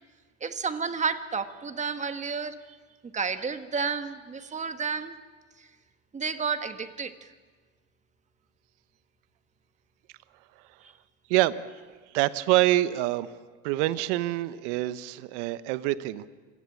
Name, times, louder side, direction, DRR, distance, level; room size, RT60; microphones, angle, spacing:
voice 1, 0.4-2.6 3.0-5.2 5.6-5.7 6.1-7.3, right 5 dB, 20° right, 10 dB, 1.4 m, -31 dB
voice 2, 12.1-13.3 13.6-16.3, right 16 dB, 60° right, 14 dB, 1.2 m, -25 dB
27.5 x 18.0 x 8.6 m, 1.4 s
supercardioid pair, 110°, 39 cm